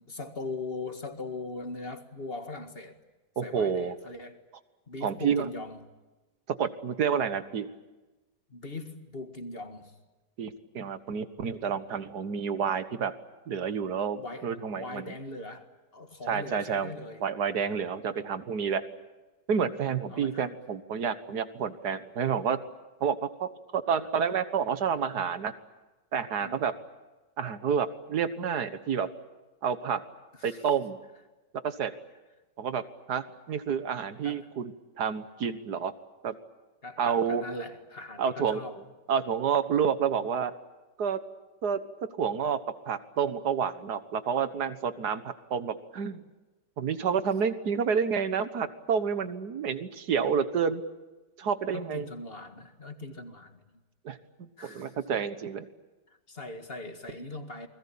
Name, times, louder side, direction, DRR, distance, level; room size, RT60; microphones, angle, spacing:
voice 1, 0.0-3.0 3.4-4.4 4.9-5.8 8.5-9.9 14.2-14.5 14.7-17.3 17.6-17.8 20.1-20.5 23.9-24.1 26.4-26.7 30.4-30.6 34.2-34.5 36.8-38.8 51.7-53.6 54.6-55.0 56.3-57.7, left 2 dB, 30° left, 2.0 m, -40 dB
voice 2, 3.4-4.0 5.0-5.5 6.6-7.7 10.4-13.1 13.5-15.1 16.3-16.9 17.2-18.9 19.5-22.6 23.0-25.5 26.1-26.7 27.4-29.1 29.6-30.0 30.4-31.0 31.6-31.9 32.6-32.8 33.1-35.9 36.2-36.3 37.0-37.4 38.2-38.6 39.1-40.5 41.0-41.2 41.6-41.8 42.2-46.2 46.8-50.8 51.4-52.1 54.1-55.7, right 7 dB, 65° right, 1.8 m, -29 dB
29.0 x 21.0 x 8.6 m
omnidirectional pair, 1.9 m